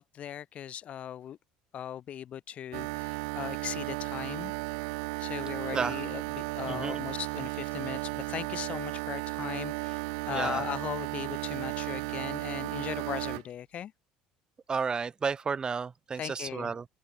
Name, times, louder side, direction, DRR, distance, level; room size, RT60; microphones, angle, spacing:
voice 1, 0.0-1.4 1.7-4.5 5.2-13.9 16.1-16.7, left 10 dB, 45° left, 3.0 m, -38 dB
sound 1, 2.7-13.4, right 35 dB, 70° right, 1.3 m, -35 dB
voice 2, 6.7-7.0 10.3-10.6 14.7-16.8, right 5 dB, 30° right, 1.1 m, -32 dB
open air
hypercardioid pair, 65°, 3 cm